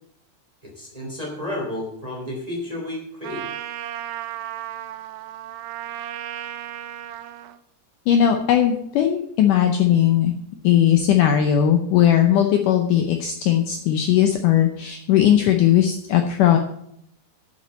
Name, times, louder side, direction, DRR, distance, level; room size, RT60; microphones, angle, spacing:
voice 1, 0.6-3.4, left 1 dB, 10° right, -1 dB, 2.3 m, -31 dB
Trumpet, 3.2-7.6, right 12 dB, 80° right, 2.2 m, -34 dB
voice 2, 8.1-10.3 10.6-16.6, left 10 dB, 85° left, 5 dB, 1.8 m, -18 dB
9.0 x 7.5 x 7.5 m, 0.72 s
omnidirectional pair, 4.8 m